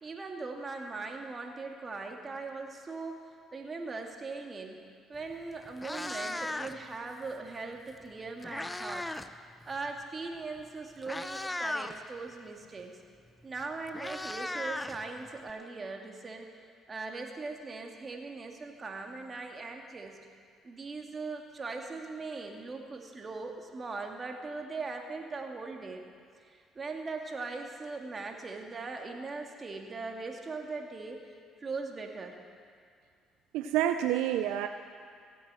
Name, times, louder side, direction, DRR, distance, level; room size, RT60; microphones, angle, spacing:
voice 1, 0.0-3.2 3.5-4.8 5.1-9.1 9.7-12.9 13.4-16.5 16.9-20.2 20.6-26.0 26.4-31.2 31.6-32.4, right 3 dB, 35° right, 2 dB, 2.1 m, -40 dB
Meow, 5.2-5.3 5.7-6.9 8.0-9.3 9.6-9.9 10.6-10.7 11.0-12.0 13.3-13.4 13.6-15.5, left 2 dB, 15° left, 0.6 m, -37 dB
voice 2, 33.5-34.7, right 11 dB, 80° right, 8 dB, 0.4 m, -28 dB
16.5 x 8.5 x 7.6 m, 2.2 s
supercardioid pair, 65°, 0 cm